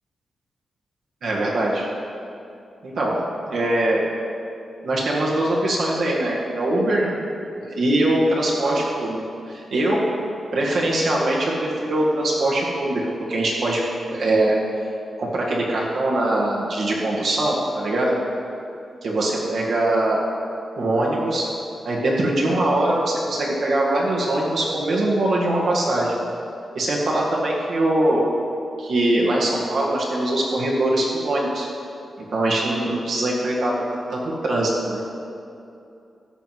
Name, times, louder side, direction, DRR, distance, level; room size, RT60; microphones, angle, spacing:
voice 1, 1.2-1.9 2.8-4.0 4.8-7.2 7.6-9.2 9.5-10.0 10.5-13.0 13.3-13.8 14.1-14.6 15.2-18.2 19.0-20.2 20.8-21.5 21.9-26.1 26.8-28.3 28.8-31.7 32.2-35.0, right 1 dB, 60° right, -4 dB, 1.9 m, -22 dB
13.5 x 4.7 x 7.6 m, 2.6 s
wide cardioid pair, 160°, 0 cm